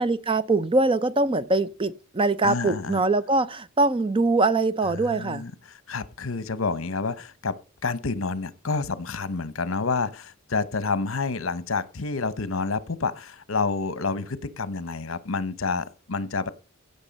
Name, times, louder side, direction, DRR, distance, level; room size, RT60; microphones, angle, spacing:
voice 1, 0.0-5.4, right 2 dB, 25° right, 0.6 m, -23 dB
voice 2, 2.4-3.0 5.1-5.5 5.9-7.5 7.8-16.5, left 4 dB, 70° left, 1.0 m, -28 dB
16.0 x 6.8 x 5.3 m
head